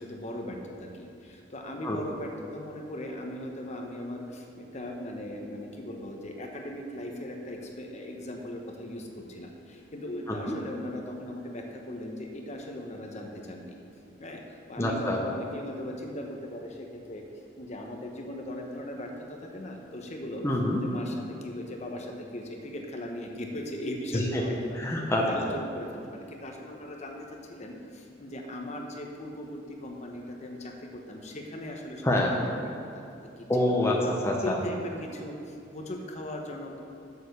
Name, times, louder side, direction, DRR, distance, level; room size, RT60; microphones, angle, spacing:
voice 1, 0.1-0.6 1.5-4.2 4.7-9.0 9.4-9.5 9.9-10.9 11.2-11.6 11.9-13.7 14.2-14.4 14.7-16.3 16.5-16.7 17.1-17.2 17.6-19.1 19.5-20.4 20.8-21.1 21.4-22.0 22.3-24.8 25.1-25.9 26.4-27.1 27.6-27.7 28.2-29.5 29.8-30.6 31.1-31.2 31.5-32.0 32.3-32.6 34.4-34.9 35.2-35.4 35.7-36.8, left 1 dB, 40° left, 2 dB, 0.9 m, -38 dB
voice 2, 14.8-15.2 20.4-20.8 24.1-24.4 24.8-25.2 32.0-32.3 33.5-34.6, left 1 dB, 15° left, -2 dB, 0.8 m, -26 dB
6.9 x 6.5 x 6.6 m, 2.6 s
head